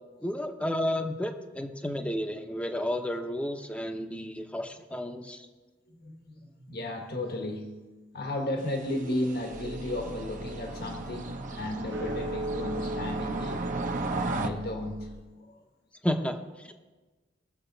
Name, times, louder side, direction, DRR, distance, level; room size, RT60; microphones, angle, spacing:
voice 1, 0.2-5.5 16.0-16.4, left 1 dB, 5° left, 5 dB, 0.9 m, -31 dB
voice 2, 5.9-7.7 8.1-13.7 14.3-15.1 15.4-15.6, left 1 dB, 55° left, 3 dB, 1.5 m, -34 dB
sound 1, 8.6-14.5, right 3 dB, 45° right, 1.0 m, -36 dB
sound 2, 9.5-15.2, right 1 dB, 75° right, 1.3 m, -39 dB
20.5 x 7.2 x 4.0 m, 1.2 s
head